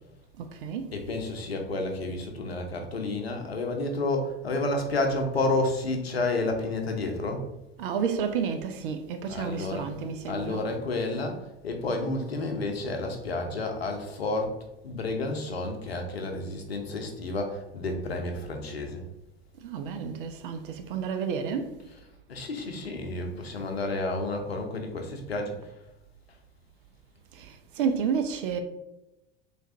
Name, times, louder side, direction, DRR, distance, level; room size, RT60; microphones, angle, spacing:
voice 1, 0.4-0.9 7.8-10.7 19.6-21.7 23.6-23.7 27.3-28.6, right 6 dB, 60° right, 0.5 m, -31 dB
voice 2, 0.9-7.4 9.3-9.9 10.2-14.6 14.8-19.0 21.9-22.0 22.3-25.7, left 2 dB, 80° left, 0.7 m, -30 dB
3.4 x 3.2 x 2.6 m
figure-of-eight pair, 80°, 30 cm